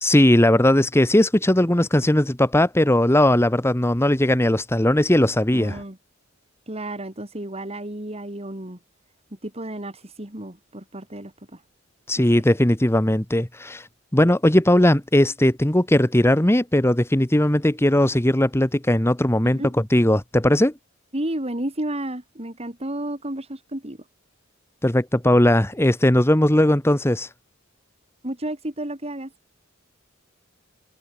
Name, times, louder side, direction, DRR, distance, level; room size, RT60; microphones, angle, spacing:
voice 1, 0.0-5.8 12.1-13.9 14.1-19.6 19.9-20.7 24.8-27.3, left 1 dB, 15° left, 1.3 m, -18 dB
voice 2, 5.5-6.0 6.7-8.8 9.4-11.6 19.4-19.7 21.1-24.0 28.2-29.3, right 1 dB, 30° right, 4.4 m, -32 dB
head